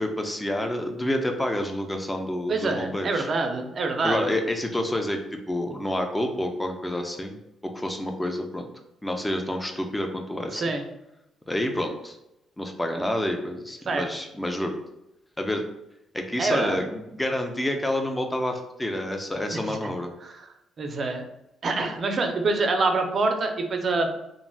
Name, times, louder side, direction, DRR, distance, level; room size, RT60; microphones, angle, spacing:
voice 1, 0.0-3.3 4.0-7.4 7.6-8.7 9.0-10.6 11.5-12.2 12.6-14.8 15.4-15.6 16.1-20.1, left 1 dB, 10° left, 4 dB, 0.4 m, -28 dB
voice 2, 2.5-4.3 10.5-10.8 13.9-14.1 16.4-16.8 19.5-19.9 20.2-20.5 20.8-21.2 21.6-24.1, right 3 dB, 45° right, 5 dB, 0.4 m, -26 dB
3.1 x 2.5 x 2.2 m, 0.88 s
cardioid pair, 90°, 0 cm